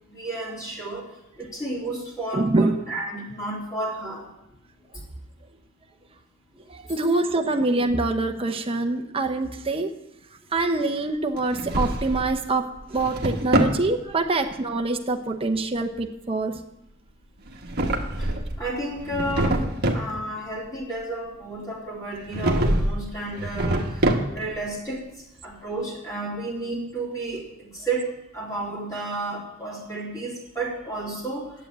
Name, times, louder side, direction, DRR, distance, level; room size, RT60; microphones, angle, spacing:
voice 1, 0.1-1.1 1.4-4.3 18.2-18.3 18.6-19.6 19.9-25.0 25.4-31.5, right 2 dB, 15° left, -5 dB, 3.1 m, -32 dB
voice 2, 2.3-2.7 6.7-9.9 10.5-16.6, right 2 dB, 25° right, 4 dB, 0.8 m, -25 dB
Drawer open or close, 11.4-12.3 12.8-13.8 17.5-18.6 19.0-20.1 22.3-23.0 23.3-24.6, right 1 dB, 50° right, 1.4 m, -24 dB
10.5 x 7.5 x 9.1 m, 0.88 s
head